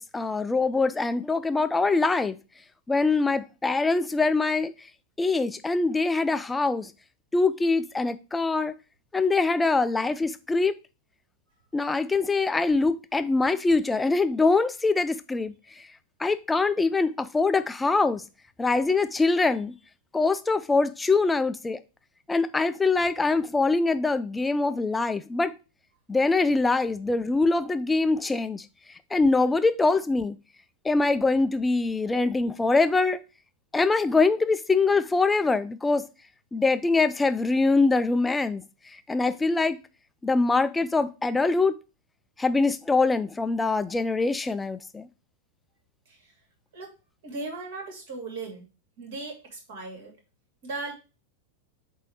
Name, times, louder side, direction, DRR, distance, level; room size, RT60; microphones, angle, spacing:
voice 1, 0.0-2.3 2.9-4.7 5.2-6.9 7.3-8.7 9.1-10.8 11.7-15.5 16.2-18.2 18.6-19.7 20.1-21.8 22.3-25.5 26.1-28.6 29.1-30.3 30.8-33.2 33.7-36.0 36.5-38.6 39.1-39.8 40.2-41.8 42.4-45.1, left 3 dB, 10° left, 0.5 m, -23 dB
voice 2, 47.2-48.6 49.0-50.1 50.6-50.9, right 3 dB, 55° right, 2.6 m, -37 dB
8.2 x 2.8 x 4.8 m
figure-of-eight pair, 90°, 0 cm